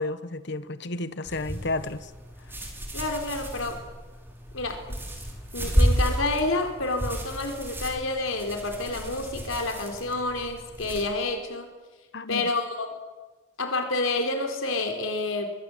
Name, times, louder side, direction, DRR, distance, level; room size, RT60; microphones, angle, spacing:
voice 1, 0.0-2.1 12.1-12.5, left 2 dB, 60° left, 13 dB, 1.3 m, -32 dB
sound 1, 1.2-11.0, equal, 10° right, 5.5 m, -31 dB
voice 2, 2.9-3.8 4.5-5.0 5.5-11.7 12.3-12.9 13.6-15.5, left 2 dB, 80° left, 5 dB, 4.1 m, -29 dB
24.5 x 24.5 x 8.1 m, 1.2 s
head